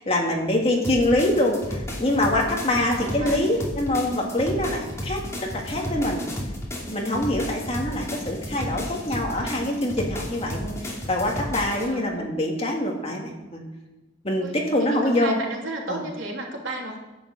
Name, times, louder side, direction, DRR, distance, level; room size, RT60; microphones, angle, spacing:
voice 1, 0.0-6.2 6.9-13.6 14.2-15.4 15.9-16.0, left 1 dB, 30° left, -1 dB, 2.5 m, -25 dB
sound 1, 0.8-11.9, equal, 15° left, 2.6 m, -33 dB
voice 2, 2.7-3.5 11.7-12.1 14.4-17.0, right 2 dB, 80° right, -1 dB, 3.1 m, -34 dB
10.5 x 9.4 x 7.7 m, 1.1 s
head